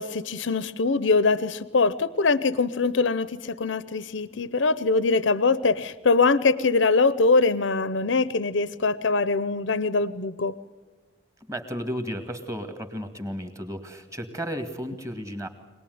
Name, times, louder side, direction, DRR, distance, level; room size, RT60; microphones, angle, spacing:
voice 1, 0.0-10.5, left 3 dB, 70° left, 16 dB, 0.7 m, -23 dB
voice 2, 11.5-15.5, equal, 15° right, 7 dB, 2.1 m, -33 dB
25.0 x 19.0 x 9.5 m, 1.3 s
head